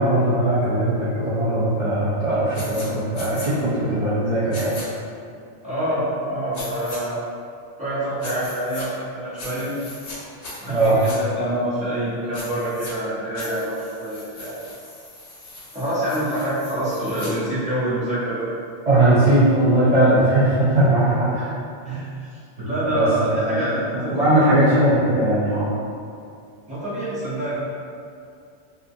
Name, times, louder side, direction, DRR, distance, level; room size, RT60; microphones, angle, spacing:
voice 1, 0.0-4.8 10.7-11.0 18.9-21.5 21.9-22.0 22.6-23.6 23.9-25.7, right 1 dB, 50° right, -11 dB, 0.4 m, -19 dB
sound 1, 2.5-2.9 3.1-3.5 4.5-4.8 6.5-7.0 8.2-8.9 9.4-10.2 10.4-11.2 12.3-12.9 13.3-17.3, left 2 dB, 50° left, 0.5 m, -38 dB
voice 2, 5.6-7.2 7.8-9.7 10.6-14.5 15.7-18.5 21.8-22.3 22.6-24.5 26.7-27.5, right 1 dB, 5° right, -14 dB, 0.9 m, -26 dB
2.4 x 2.3 x 2.6 m, 2.4 s
omnidirectional pair, 1.2 m